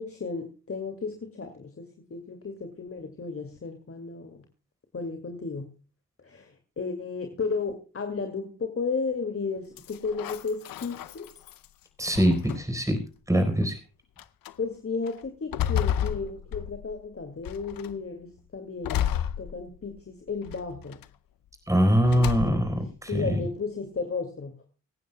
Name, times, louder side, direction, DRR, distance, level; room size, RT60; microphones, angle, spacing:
voice 1, 0.0-4.4 4.9-5.7 6.2-11.3 14.6-19.0 19.4-21.0 22.2-22.6 23.1-24.7, left 4 dB, 40° left, 5 dB, 2.2 m, -34 dB
sound 1, 9.8-11.7 12.1-12.9 13.6-13.7 14.2-14.5 15.1-17.0 17.5-18.0 18.8-20.0 20.5-21.1 22.0-22.8, left 10 dB, 85° left, 0.7 m, -31 dB
voice 2, 12.0-13.0 13.3-13.8 21.7-23.4, equal, 10° right, 7 dB, 4.1 m, -23 dB
24.5 x 9.3 x 2.2 m, 0.34 s
cardioid pair, 60°, 34 cm